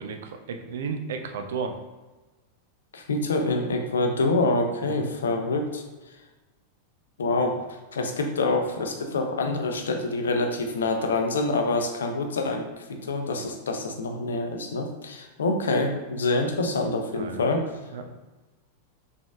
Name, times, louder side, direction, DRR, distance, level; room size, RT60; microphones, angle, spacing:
voice 1, 0.0-1.7 4.8-5.1 17.1-17.5 17.9-18.1, right 5 dB, 60° right, 5 dB, 0.4 m, -33 dB
voice 2, 2.9-5.8 7.2-7.6 7.9-17.6, left 2 dB, 65° left, 4 dB, 0.5 m, -26 dB
3.9 x 3.5 x 2.3 m, 1.2 s
figure-of-eight pair, 90°, 0 cm